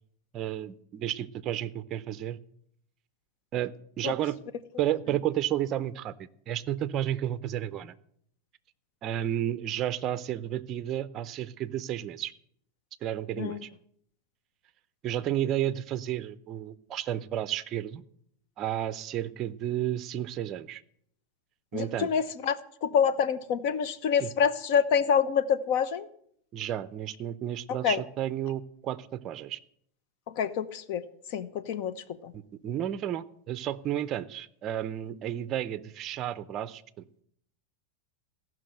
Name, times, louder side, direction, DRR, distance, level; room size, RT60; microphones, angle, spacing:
voice 1, 0.3-2.4 3.5-4.4 4.8-7.9 9.0-12.3 13.0-13.7 15.0-18.0 18.6-20.8 21.7-22.1 24.2-24.3 26.5-29.6 32.3-37.0, right 11 dB, 30° right, 15 dB, 0.6 m, -32 dB
voice 2, 21.7-22.6 22.8-26.1 27.8-28.0 30.3-31.0 31.3-32.3, left 7 dB, 50° left, 14 dB, 0.9 m, -27 dB
15.0 x 6.1 x 7.7 m, 0.67 s
supercardioid pair, 155°, 0 cm